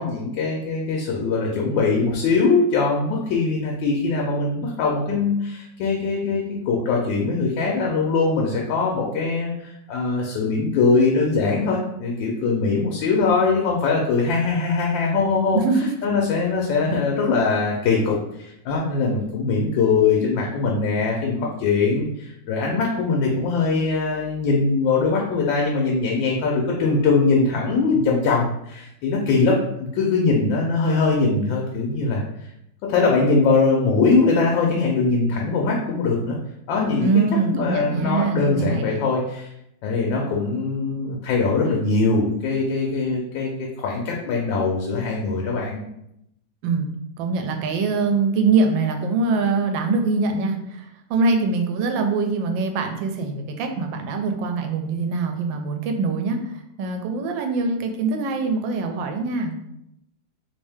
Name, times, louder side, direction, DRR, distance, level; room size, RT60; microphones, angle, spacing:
voice 1, 0.0-15.6 16.0-32.2 32.9-36.4 36.7-37.2 37.5-39.5 39.8-43.5 43.8-45.8, left 4 dB, 85° left, -1 dB, 1.3 m, -21 dB
voice 2, 15.5-15.9 37.0-39.0 46.6-46.9 47.2-50.8 51.1-59.5, right 4 dB, 85° right, 5 dB, 1.3 m, -23 dB
3.3 x 2.6 x 3.4 m, 0.81 s
omnidirectional pair, 2.0 m